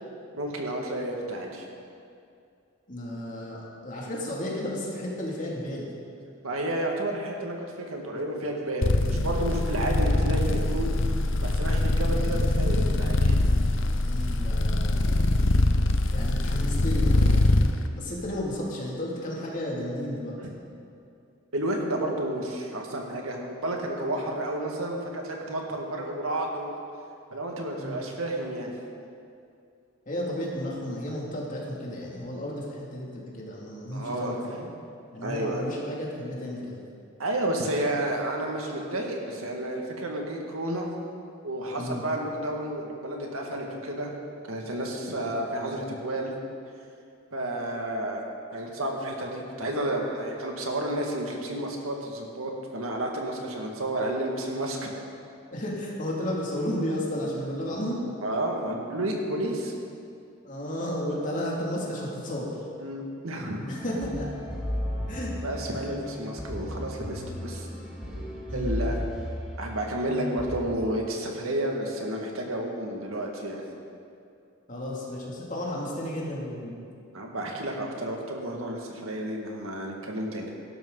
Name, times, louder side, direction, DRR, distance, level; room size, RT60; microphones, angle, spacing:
voice 1, 0.3-1.7 6.4-10.9 11.4-13.4 20.4-20.5 21.5-26.7 27.3-28.7 33.9-34.3 35.2-35.6 37.2-40.9 41.4-44.1 44.5-46.3 47.3-48.2 48.5-54.9 58.2-59.7 62.8-63.6 65.4-67.7 68.5-69.0 69.6-73.6 77.1-80.5, right 1 dB, 85° right, 0 dB, 2.0 m, -31 dB
voice 2, 2.9-5.9 14.0-15.2 16.1-17.4 17.9-20.4 27.8-28.0 30.1-34.6 35.1-36.8 41.8-42.0 45.0-45.3 55.5-58.0 60.4-62.5 63.7-64.3 65.1-65.3 65.8-65.9 68.5-68.7 74.7-76.8, left 1 dB, 40° left, -4 dB, 2.6 m, -33 dB
sound 1, 8.8-17.7, left 2 dB, 60° left, 0.7 m, -23 dB
sound 2, 63.8-70.6, equal, 5° right, 2.4 m, -34 dB
17.0 x 12.0 x 4.0 m, 2.5 s
head